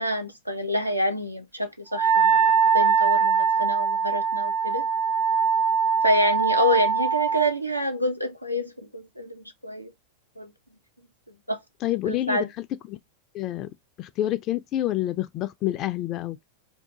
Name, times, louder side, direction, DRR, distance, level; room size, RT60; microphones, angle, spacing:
voice 1, 0.0-2.5 2.7-4.9 6.0-9.9 10.4-10.5 11.5-11.6 12.1-12.5, equal, 90° right, 0.5 m, -27 dB
Wind instrument woodwind instrument, 1.9-7.5, right 6 dB, 30° right, 0.5 m, -22 dB
voice 2, 11.8-13.0 13.3-13.7 14.0-16.4, left 14 dB, 35° left, 0.3 m, -28 dB
2.6 x 2.3 x 3.6 m
figure-of-eight pair, 90°, 0 cm